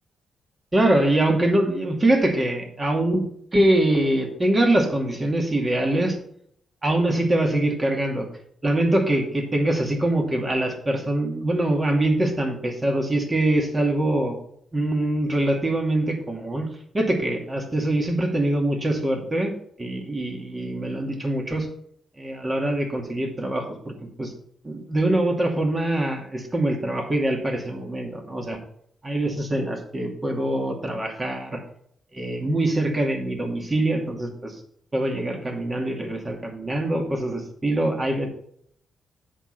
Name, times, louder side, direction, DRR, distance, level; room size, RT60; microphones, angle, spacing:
voice 1, 0.7-3.3 3.5-6.2 6.8-8.3 8.6-14.4 14.7-16.7 16.9-19.5 19.8-21.7 22.2-24.3 24.6-28.6 29.0-31.6 32.1-34.6 34.9-38.3, right 1 dB, 25° right, 2 dB, 2.4 m, -23 dB
7.9 x 6.3 x 5.7 m, 0.68 s
cardioid pair, 90°, 0 cm